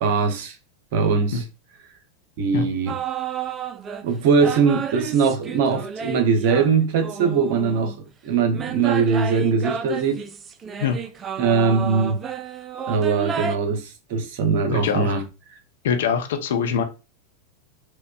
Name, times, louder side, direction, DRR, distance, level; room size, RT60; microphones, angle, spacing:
voice 1, 0.0-0.6 0.9-1.4 2.4-3.0 4.0-8.0 8.2-10.2 11.4-12.2 12.9-15.2, right 5 dB, 55° right, 0.7 m, -21 dB
sound 1, 2.9-4.1 4.4-8.0 8.5-13.6, right 7 dB, 25° right, 0.4 m, -31 dB
voice 2, 14.7-15.2 15.8-16.8, left 6 dB, 60° left, 0.6 m, -23 dB
4.4 x 2.2 x 2.3 m
figure-of-eight pair, 90°, 0 cm